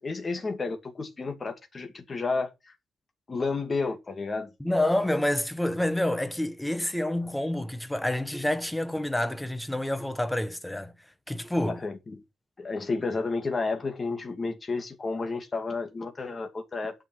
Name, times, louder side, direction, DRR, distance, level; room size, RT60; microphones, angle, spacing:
voice 1, 0.0-2.7 3.3-4.5 11.7-12.2 12.6-16.9, left 3 dB, 30° left, 2.4 m, -31 dB
voice 2, 4.6-10.9 11.3-11.8, left 1 dB, 5° left, 1.0 m, -28 dB
9.3 x 6.3 x 6.0 m
cardioid pair, 145°, 0 cm